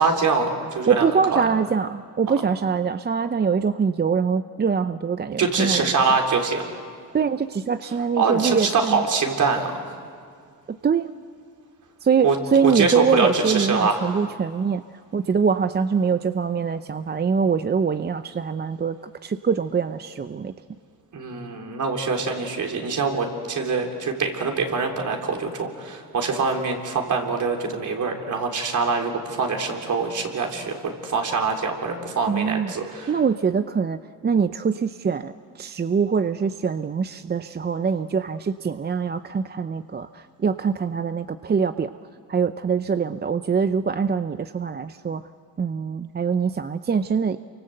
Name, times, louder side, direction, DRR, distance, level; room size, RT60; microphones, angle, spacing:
voice 1, 0.0-1.1 1.3-1.5 5.4-6.6 8.2-9.8 12.2-12.4 12.6-14.1 21.1-33.1, right 4 dB, 60° right, 2 dB, 3.9 m, -24 dB
voice 2, 0.9-5.9 7.1-9.0 10.7-11.1 12.0-14.8 15.1-20.5 32.3-32.7 33.1-41.9 42.3-45.3 45.6-47.4, right 6 dB, 30° right, 11 dB, 0.6 m, -23 dB
28.5 x 25.0 x 7.9 m, 2.2 s
cardioid pair, 100°, 35 cm